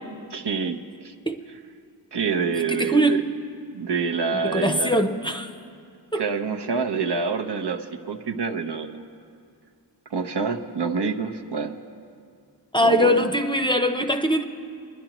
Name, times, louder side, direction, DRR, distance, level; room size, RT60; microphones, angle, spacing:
voice 1, 0.3-1.1 2.1-3.2 3.7-4.9 6.2-9.1 10.1-11.8 12.8-13.2, right 5 dB, 70° right, 4 dB, 0.7 m, -27 dB
voice 2, 2.7-3.3 4.4-5.5 6.1-6.3 12.7-14.4, equal, 10° left, 5 dB, 0.6 m, -22 dB
26.0 x 10.5 x 3.0 m, 2.3 s
wide cardioid pair, 50°, 43 cm